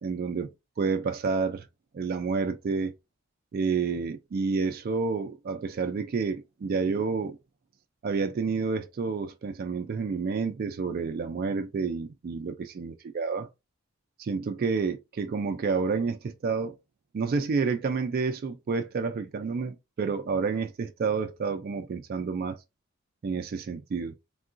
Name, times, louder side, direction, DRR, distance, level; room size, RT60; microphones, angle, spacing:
voice 1, 0.0-1.7 1.9-2.9 3.5-7.4 8.0-13.5 14.2-16.8 17.1-22.6 23.2-24.1, right 5 dB, 45° right, 0.3 m, -29 dB
3.7 x 2.3 x 2.5 m
head